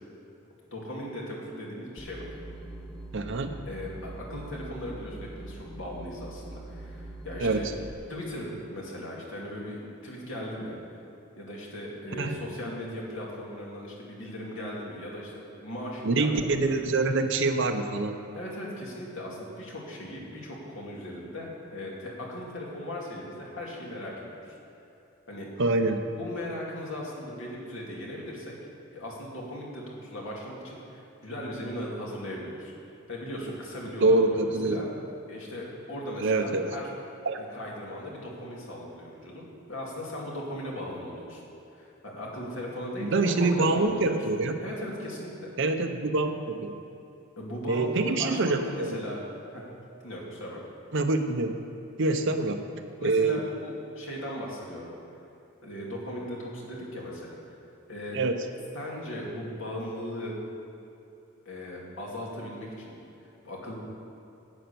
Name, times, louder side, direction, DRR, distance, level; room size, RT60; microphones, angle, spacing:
voice 1, 0.7-2.3 3.6-7.7 8.1-10.7 11.4-16.3 16.6-16.8 18.3-24.6 25.3-25.7 26.2-28.5 28.9-32.7 33.1-34.9 35.3-36.8 37.4-41.4 41.8-44.2 44.6-45.5 47.4-49.2 49.5-49.6 50.0-50.6 52.3-52.4 53.0-54.9 55.6-57.6 57.9-58.2 58.7-60.4 61.5-62.9 63.4-63.7, left 1 dB, 65° left, -3 dB, 2.5 m, -38 dB
sound 1, 2.0-7.9, right 1 dB, 5° left, 0.8 m, -42 dB
voice 2, 3.1-3.6 7.4-7.7 12.2-12.4 16.0-18.2 25.6-26.0 34.0-34.8 36.2-36.7 37.2-37.5 43.0-44.6 45.6-46.7 47.7-49.0 50.9-51.6 52.0-52.6 53.0-53.4 58.1-58.4, right 3 dB, 65° right, 6 dB, 0.8 m, -25 dB
10.5 x 9.1 x 6.9 m, 2.9 s
head